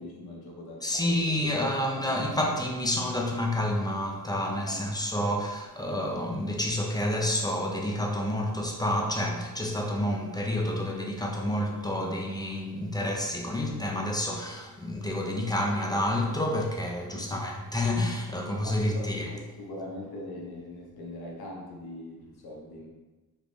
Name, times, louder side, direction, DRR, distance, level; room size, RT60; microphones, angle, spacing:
voice 1, 0.0-1.4 1.8-2.5 4.6-5.0 17.1-17.5 18.6-22.9, left 1 dB, 75° left, 0.7 m, -42 dB
voice 2, 0.8-19.3, left 1 dB, 10° left, 0.3 m, -29 dB
3.4 x 3.1 x 2.5 m
wide cardioid pair, 140°, 38 cm